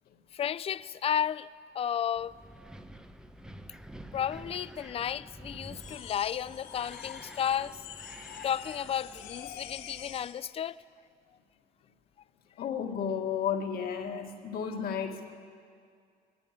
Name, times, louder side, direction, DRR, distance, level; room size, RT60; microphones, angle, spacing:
voice 1, 0.3-1.5 1.7-2.3 4.1-7.9 8.4-10.8, left 9 dB, 35° left, 0.4 m, -32 dB
Wind, 2.2-10.3, right 1 dB, 5° right, 0.9 m, -49 dB
sound 1, 5.7-10.4, left 9 dB, 85° left, 1.8 m, -46 dB
voice 2, 12.6-15.2, left 7 dB, 65° left, 2.0 m, -32 dB
20.0 x 16.0 x 8.9 m
cardioid pair, 110°, 17 cm